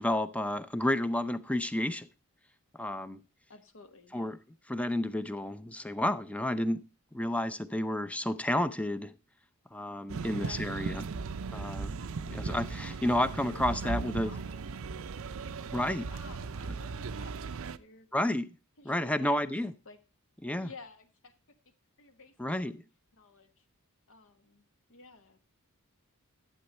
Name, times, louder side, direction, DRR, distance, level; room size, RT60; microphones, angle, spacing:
voice 1, 0.0-2.1 2.8-3.2 4.1-4.4 4.7-6.8 7.1-9.1 9.7-11.0 11.5-11.9 12.2-14.3 15.7-16.0 18.1-18.5 18.8-19.7 20.4-20.7 22.4-22.8, left 1 dB, 5° left, 0.5 m, -31 dB
voice 2, 3.5-4.3 10.3-10.7 12.7-13.1 13.5-17.3 17.6-18.1 18.8-19.4 19.8-20.0 20.6-21.3 22.0-22.7 23.1-23.6 24.1-24.6 24.9-25.4, left 4 dB, 60° left, 1.2 m, -53 dB
sound 1, 10.1-17.8, right 4 dB, 65° right, 0.5 m, -37 dB
12.0 x 8.0 x 4.2 m
head